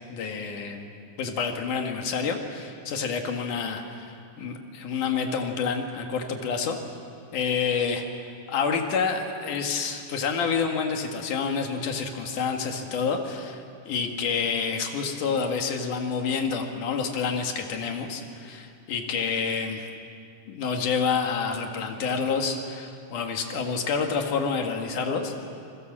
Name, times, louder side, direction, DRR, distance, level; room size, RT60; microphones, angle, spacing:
voice 1, 0.1-0.9 1.2-4.1 4.4-6.8 7.3-8.2 8.5-19.9 20.5-25.4, left 5 dB, 55° left, 3 dB, 2.5 m, -28 dB
28.5 x 22.0 x 7.5 m, 2.4 s
omnidirectional pair, 5.4 m